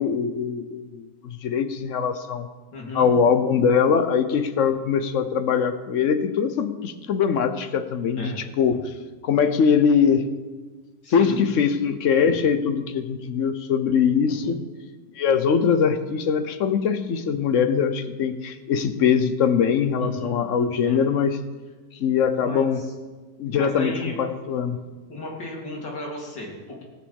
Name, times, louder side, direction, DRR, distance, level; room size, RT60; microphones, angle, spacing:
voice 1, 0.0-2.5 2.9-8.8 9.2-10.3 11.1-14.6 15.2-21.4 22.0-22.8 23.4-24.8, left 6 dB, 55° left, 10 dB, 0.9 m, -22 dB
voice 2, 2.7-3.1 8.1-8.4 11.0-11.4 14.3-14.6 20.0-20.3 20.8-21.0 22.4-22.7 23.6-24.2 25.1-26.8, left 1 dB, 80° left, -2 dB, 3.3 m, -34 dB
18.5 x 6.2 x 7.1 m, 1.3 s
omnidirectional pair, 1.9 m